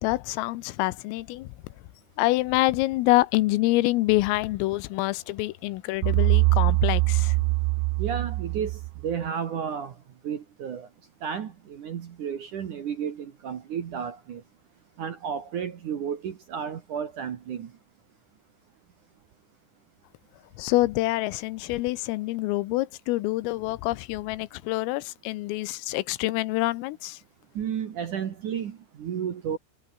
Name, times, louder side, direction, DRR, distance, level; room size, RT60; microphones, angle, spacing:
voice 1, 0.0-1.5 2.2-7.4 20.6-27.2, left 19 dB, 90° left, 3.6 m, -26 dB
sound 1, 6.0-9.1, right 23 dB, 85° right, 3.1 m, -23 dB
voice 2, 8.0-9.9 10.2-10.9 11.2-14.4 15.0-17.7 27.5-29.6, right 8 dB, 55° right, 2.3 m, -32 dB
omnidirectional pair, 5.8 m